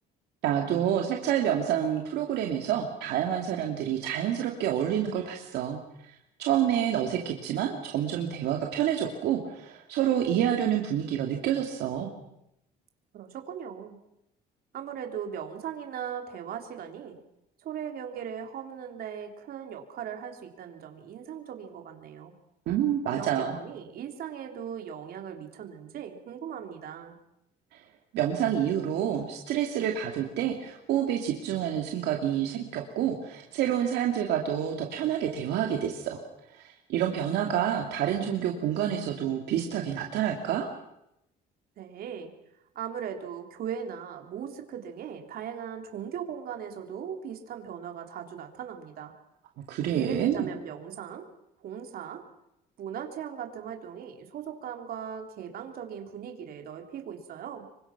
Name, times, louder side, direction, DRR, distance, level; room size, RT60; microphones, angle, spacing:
voice 1, 0.4-5.8 6.4-12.1 22.7-23.6 28.1-36.2 36.5-40.7 49.7-50.5, right 10 dB, 80° right, 2 dB, 2.6 m, -28 dB
voice 2, 13.1-14.0 14.7-17.2 17.6-22.3 23.1-27.2 41.8-42.3 42.8-49.1 49.9-51.3 51.6-52.2 52.8-57.7, right 8 dB, 65° right, 4 dB, 3.7 m, -38 dB
27.0 x 24.0 x 6.1 m, 0.84 s
cardioid pair, 110°, 17 cm